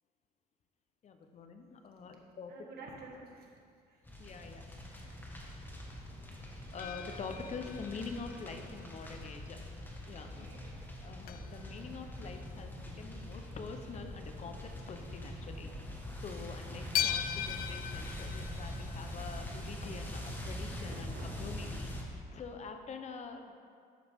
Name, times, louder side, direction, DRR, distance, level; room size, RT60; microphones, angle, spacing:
voice 1, 1.0-2.5 4.2-4.6 6.7-10.5 11.0-15.7 16.2-21.1 21.4-23.5, left 5 dB, 45° left, 6 dB, 0.8 m, -46 dB
voice 2, 2.5-4.0 4.9-5.3 5.7-5.9 10.2-10.9 14.4-14.5 20.8-21.7, right 3 dB, 65° right, -1 dB, 1.9 m, -52 dB
sound 1, 4.0-22.0, left 1 dB, 10° left, 1.5 m, -43 dB
sound 2, 6.8-9.3 9.7-9.9 10.4-10.5 10.7-10.8 11.3-13.4 13.8-14.0 14.3-14.4 15.0-15.2 15.6-15.7 17.0-19.9 21.1-21.2 21.6-21.7, left 10 dB, 60° left, 0.4 m, -40 dB
11.0 x 8.0 x 3.6 m, 2.3 s
cardioid pair, 110°, 17 cm